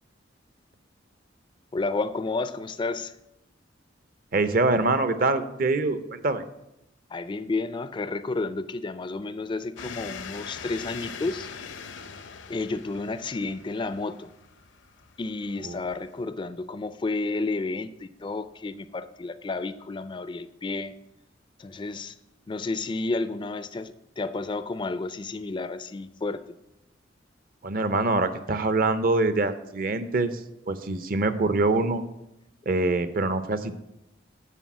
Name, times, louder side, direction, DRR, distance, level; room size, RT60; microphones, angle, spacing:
voice 1, 1.7-3.1 7.1-11.5 12.5-14.3 15.2-20.9 21.6-22.2 22.5-26.4, left 3 dB, 25° left, 13 dB, 0.3 m, -31 dB
voice 2, 4.3-6.4 15.6-15.8 27.6-30.4 30.7-32.0 32.7-33.7, right 3 dB, 50° right, 11 dB, 0.6 m, -24 dB
sound 1, 9.8-16.2, left 6 dB, 75° left, 0.6 m, -42 dB
10.0 x 4.3 x 7.2 m, 0.86 s
head